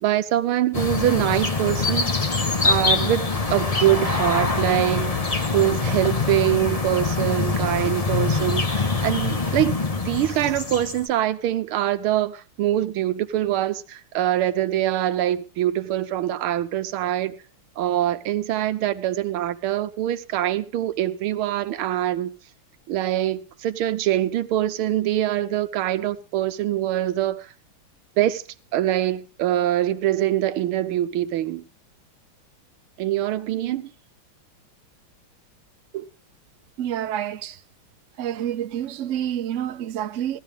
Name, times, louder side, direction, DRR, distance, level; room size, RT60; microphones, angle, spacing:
voice 1, 0.0-2.1 2.6-3.2 3.5-5.2 5.5-9.8 10.0-17.4 17.8-22.3 22.9-27.5 28.2-28.4 28.7-31.7 33.0-33.9 35.9-36.0, right 13 dB, 90° right, 1.7 m, -24 dB
sound 1, 0.7-11.1, left 4 dB, 35° left, 0.6 m, -24 dB
voice 2, 36.8-37.6 38.2-40.4, right 10 dB, 70° right, 0.7 m, -28 dB
17.0 x 12.5 x 3.4 m
omnidirectional pair, 2.3 m